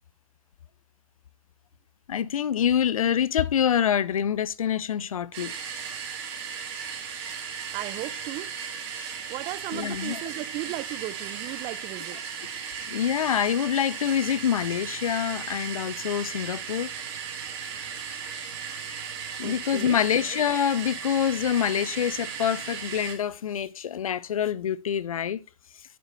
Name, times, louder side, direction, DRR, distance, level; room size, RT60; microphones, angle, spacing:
voice 1, 2.1-5.5 9.7-10.2 12.9-16.9 19.4-25.4, left 9 dB, 80° left, 0.5 m, -26 dB
sound 1, 5.3-23.1, right 7 dB, 50° right, 2.2 m, -36 dB
voice 2, 7.7-8.5 9.3-12.2 19.4-20.0, right 17 dB, 30° right, 0.4 m, -36 dB
8.1 x 7.6 x 3.2 m
hypercardioid pair, 125°, 18 cm